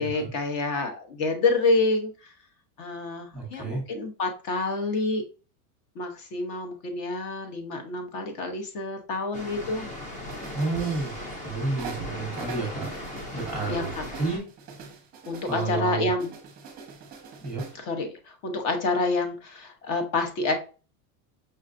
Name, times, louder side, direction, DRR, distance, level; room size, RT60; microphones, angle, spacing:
voice 1, 0.0-2.3 2.8-5.2 5.9-9.9 13.7-14.1 15.3-16.3 17.8-20.5, left 3 dB, 45° left, 5 dB, 1.0 m, -28 dB
voice 2, 3.3-3.8 10.5-11.1 11.4-12.9 13.3-13.9 14.2-14.5 15.5-16.1 17.4-17.6, right 3 dB, 5° right, -1 dB, 1.1 m, -30 dB
Water, 9.3-14.4, left 1 dB, 20° left, 0.4 m, -38 dB
sound 1, 10.3-11.5 11.8-15.8 16.2-17.8, right 5 dB, 20° right, 0.7 m, -43 dB
5.5 x 2.3 x 2.5 m, 0.35 s
supercardioid pair, 160°, 43 cm